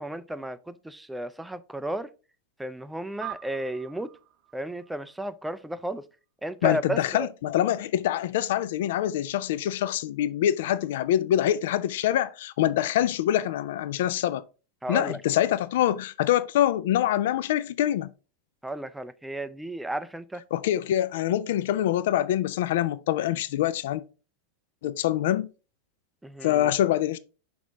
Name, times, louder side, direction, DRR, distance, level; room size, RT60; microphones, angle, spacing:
voice 1, 0.0-2.1 2.6-4.1 4.5-6.1 6.4-7.3 14.8-15.2 18.6-20.4 26.2-26.7, right 1 dB, 5° right, 0.4 m, -33 dB
sound 1, 3.2-5.9, right 12 dB, 40° right, 0.8 m, -44 dB
voice 2, 6.6-14.4 14.9-18.1 20.5-24.0 24.8-25.5 26.4-27.2, left 12 dB, 55° left, 0.4 m, -25 dB
6.0 x 5.0 x 3.6 m
figure-of-eight pair, 90°, 0 cm